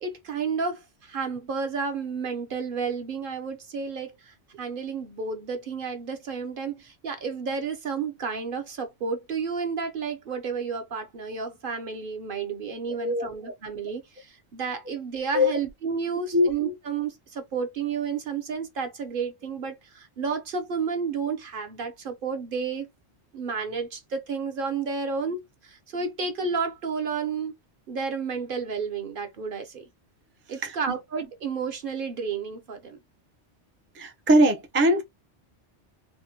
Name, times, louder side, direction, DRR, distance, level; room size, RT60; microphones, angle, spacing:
voice 1, 0.0-22.9 23.3-27.5 27.9-29.8 30.5-33.0, right 5 dB, 55° right, 0.8 m, -31 dB
voice 2, 12.9-13.5 15.3-15.6 16.3-16.5 30.6-31.0 33.9-35.0, equal, 20° right, 0.3 m, -22 dB
3.4 x 2.1 x 2.7 m
omnidirectional pair, 1.2 m